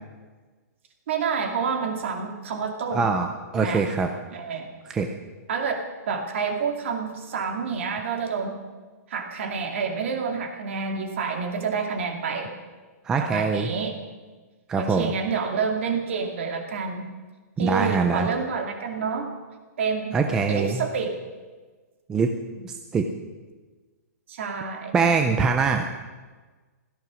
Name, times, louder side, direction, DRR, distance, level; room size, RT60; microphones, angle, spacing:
voice 1, 1.1-3.1 3.6-3.9 4.3-4.7 5.5-5.8 6.1-8.6 9.1-12.5 13.2-14.0 14.8-17.1 17.6-19.3 19.8-20.2 20.5-21.1 24.3-24.9, right 5 dB, 45° right, 4 dB, 2.4 m, -28 dB
voice 2, 2.9-4.1 4.9-5.1 13.0-13.7 14.7-15.1 17.6-18.3 20.1-20.8 22.1-22.3 22.6-23.1 24.9-25.8, right 5 dB, 5° right, 5 dB, 0.4 m, -23 dB
16.5 x 14.0 x 6.2 m, 1.3 s
hypercardioid pair, 180°, 9 cm